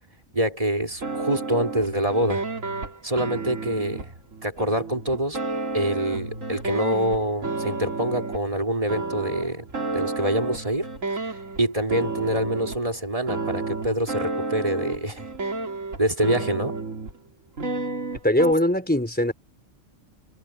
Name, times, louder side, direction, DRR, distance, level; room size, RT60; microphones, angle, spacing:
voice 1, 0.3-2.4 3.0-4.1 4.4-5.4 5.7-9.7 9.9-10.9 11.2-11.3 11.6-15.3 16.0-16.8, right 1 dB, 25° right, 3.7 m, -25 dB
sound 1, 0.9-8.5 8.9-11.6 11.9-12.8 13.3-17.2 17.6-18.5, right 3 dB, 90° right, 3.1 m, -31 dB
voice 2, 18.2-19.3, left 1 dB, 5° left, 4.0 m, -21 dB
omnidirectional pair, 1.3 m